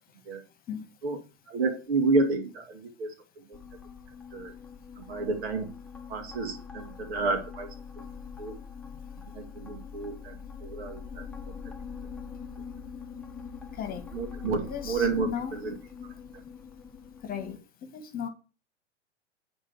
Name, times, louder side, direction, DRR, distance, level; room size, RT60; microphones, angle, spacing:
voice 1, 1.5-3.1 3.5-3.6 4.3-4.5 5.0-5.7 6.1-7.7 8.4-8.6 9.3-11.5 14.1-15.7, right 3 dB, 60° right, 2.4 m, -30 dB
sound 1, 3.5-17.6, left 6 dB, 5° left, 1.1 m, -43 dB
voice 2, 14.6-15.7 17.2-17.6 17.9-18.3, left 8 dB, 25° left, 1.5 m, -36 dB
9.8 x 3.9 x 7.1 m
hypercardioid pair, 105°, 35 cm